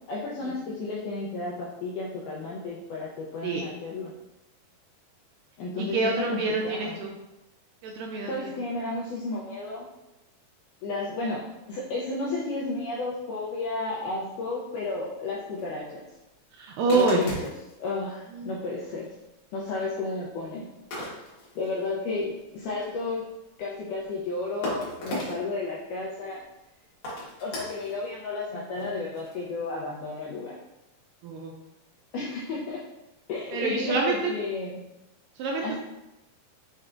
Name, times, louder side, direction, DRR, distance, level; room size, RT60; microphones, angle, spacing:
voice 1, 0.1-4.1 5.6-7.0 8.3-9.9 10.8-11.4 11.7-16.0 16.9-17.5 17.8-19.1 19.5-20.7 21.6-23.3 23.6-26.4 27.4-30.6 32.1-32.8 33.3-34.8 35.6-35.8, left 3 dB, 80° left, -4 dB, 1.8 m, -32 dB
voice 2, 5.9-7.1 7.8-8.3 16.6-17.2 18.4-18.5 31.2-31.5 33.5-34.2 35.4-35.8, right 3 dB, 80° right, 0 dB, 2.0 m, -26 dB
sound 1, 14.8-15.0 15.4-15.6 16.9-17.9 18.9-19.0 19.5-19.8 20.9-21.8 22.1-22.2 22.4-23.2 24.1-24.2 24.6-25.5 26.2-26.3 27.0-28.1 28.7-29.5, left 1 dB, 55° left, 2.2 m, -36 dB
6.4 x 3.3 x 2.5 m, 0.96 s
omnidirectional pair, 4.3 m